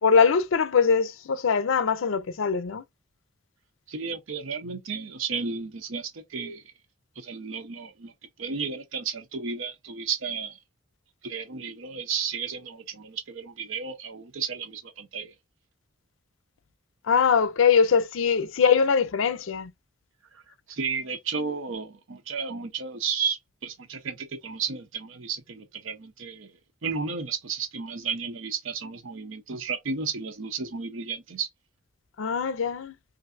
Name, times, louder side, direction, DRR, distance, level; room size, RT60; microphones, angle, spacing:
voice 1, 0.0-2.8 17.1-19.7 32.2-32.9, left 6 dB, 70° left, 0.5 m, -22 dB
voice 2, 3.9-6.7 7.2-10.6 11.2-15.3 20.3-20.4 20.7-31.5, right 5 dB, 70° right, 0.7 m, -33 dB
3.2 x 2.6 x 2.4 m
head